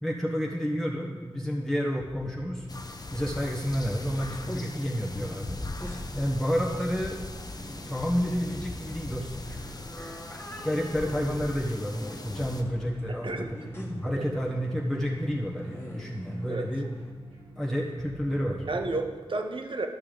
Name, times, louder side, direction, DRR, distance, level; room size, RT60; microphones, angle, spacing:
voice 1, 0.0-2.7 3.1-5.6 6.1-7.2 7.6-9.4 10.6-16.9 17.5-18.6, equal, 5° left, -3 dB, 1.4 m, -30 dB
sound 1, 1.9-19.0, right 2 dB, 90° right, 1.7 m, -49 dB
sound 2, 2.7-12.6, left 2 dB, 40° left, 0.8 m, -40 dB
sound 3, 3.4-17.1, left 1 dB, 20° left, 1.8 m, -46 dB
voice 2, 13.1-13.5 14.0-14.2 16.5-16.6 18.7-19.9, right 2 dB, 60° right, 5 dB, 1.0 m, -32 dB
12.0 x 5.8 x 5.1 m, 1.4 s
cardioid pair, 50°, 10 cm